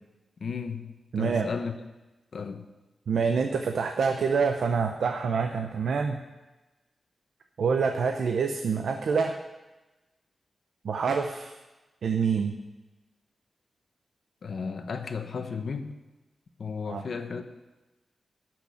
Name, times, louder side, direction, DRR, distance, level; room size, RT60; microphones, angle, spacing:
voice 1, 0.4-1.7 2.3-2.7 14.4-15.9 16.6-17.4, left 5 dB, 65° left, 7 dB, 1.1 m, -34 dB
voice 2, 1.1-1.5 3.1-6.2 7.6-9.4 10.8-11.5 12.0-12.6 16.9-17.0, right 5 dB, 80° right, 4 dB, 0.8 m, -26 dB
12.5 x 6.1 x 8.4 m, 1.1 s
wide cardioid pair, 120°, 0 cm